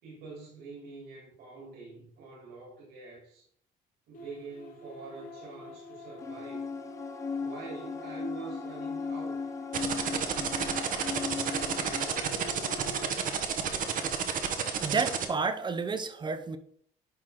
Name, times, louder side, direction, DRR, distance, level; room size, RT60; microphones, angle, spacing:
voice 1, 0.0-3.4 4.1-6.6 7.4-9.4, right 4 dB, 85° right, -4 dB, 3.7 m, -45 dB
sound 1, 4.1-13.2, left 3 dB, 55° left, 1.6 m, -46 dB
sound 2, 6.2-12.1, left 5 dB, 20° left, 0.5 m, -37 dB
sound 3, 9.7-15.3, right 7 dB, 55° right, 1.1 m, -30 dB
voice 2, 14.8-16.6, right 4 dB, 25° right, 10 dB, 0.8 m, -30 dB
10.5 x 4.7 x 3.7 m, 0.62 s
cardioid pair, 110°, 17 cm